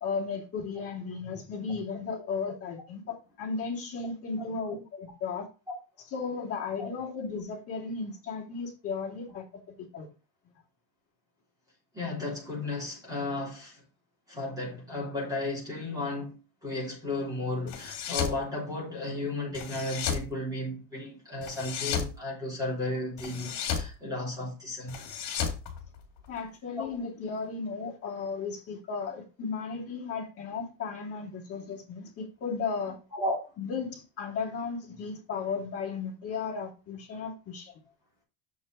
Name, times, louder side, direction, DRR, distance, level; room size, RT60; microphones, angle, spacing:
voice 1, 0.0-5.5 6.1-9.4 9.9-10.1 26.3-33.0 33.6-37.7, left 5 dB, 30° left, 2.9 m, -35 dB
voice 2, 4.4-4.8 6.8-7.1 11.9-13.8 14.3-25.0 26.8-26.9 33.1-33.4, left 2 dB, 10° right, 3.2 m, -34 dB
sound 1, 17.7-18.4 19.5-20.3 21.4-22.1 23.2-23.9 24.9-26.4, left 7 dB, 55° left, 2.4 m, -33 dB
7.0 x 6.2 x 3.8 m
cardioid pair, 180°, 48 cm